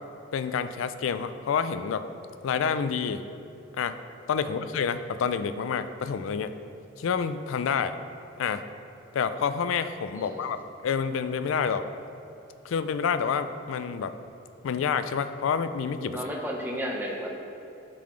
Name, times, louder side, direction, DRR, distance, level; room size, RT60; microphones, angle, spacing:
voice 1, 0.3-2.0 2.4-3.2 3.7-4.0 4.3-6.5 7.0-7.9 8.4-8.6 9.1-10.6 10.8-11.8 12.6-14.1 14.6-16.2, left 6 dB, 85° left, 11 dB, 0.3 m, -28 dB
voice 2, 16.1-17.3, equal, 10° right, -1 dB, 0.7 m, -33 dB
10.5 x 3.9 x 3.2 m, 2.8 s
head